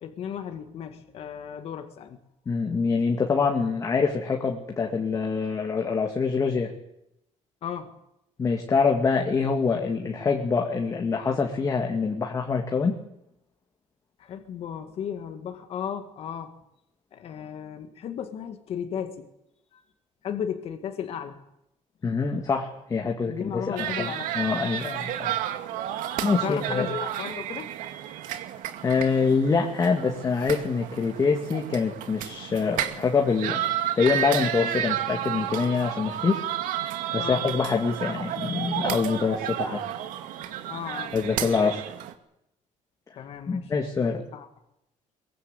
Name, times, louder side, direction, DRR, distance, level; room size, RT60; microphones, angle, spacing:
voice 1, 0.0-2.2 7.6-7.9 14.2-16.5 17.1-19.3 19.7-19.8 20.2-21.4 23.2-24.3 26.4-27.7 37.2-37.4 40.7-41.2 43.2-44.5, left 8 dB, 50° left, 6 dB, 2.1 m, -35 dB
voice 2, 2.5-6.7 8.4-13.0 22.0-25.4 26.2-26.9 28.8-33.6 34.0-36.4 37.1-39.8 41.1-41.8 43.5-44.2, left 5 dB, 25° left, 2 dB, 2.3 m, -25 dB
sound 1, 23.8-42.1, right 11 dB, 90° right, 2.3 m, -32 dB
23.0 x 22.5 x 8.3 m, 0.82 s
cardioid pair, 170°, 13 cm